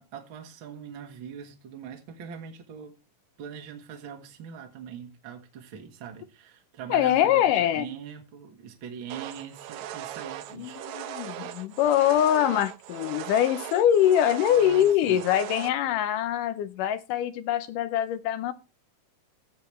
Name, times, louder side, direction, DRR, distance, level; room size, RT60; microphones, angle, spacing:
voice 1, 0.0-3.0 3.4-10.8 14.5-15.2, right 7 dB, 45° right, 1.8 m, -42 dB
voice 2, 6.9-7.9 10.6-18.5, left 11 dB, 80° left, 2.2 m, -23 dB
sound 1, 9.1-15.7, right 12 dB, 75° right, 1.9 m, -39 dB
15.5 x 7.7 x 3.2 m
omnidirectional pair, 3.8 m